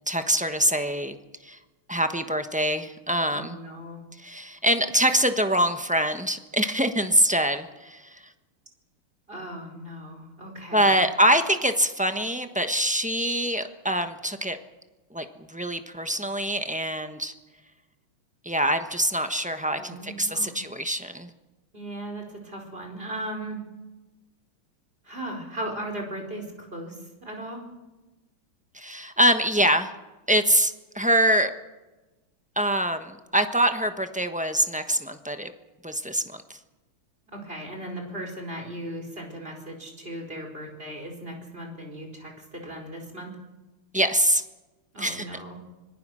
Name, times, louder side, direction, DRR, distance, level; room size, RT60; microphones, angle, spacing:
voice 1, 0.1-1.1 1.4-1.6 1.9-3.6 4.2-8.3 10.7-14.6 15.1-17.3 18.4-21.3 28.7-29.9 30.3-31.5 32.6-35.5 35.8-36.6 43.9-44.4 45.0-45.3, equal, 5° right, 8 dB, 0.6 m, -24 dB
voice 2, 3.3-4.0 9.3-11.0 19.8-20.5 21.7-23.6 25.0-27.6 37.3-43.3 44.9-45.6, right 1 dB, 25° right, 2 dB, 4.9 m, -37 dB
25.5 x 20.0 x 6.4 m, 1.1 s
omnidirectional pair, 2.3 m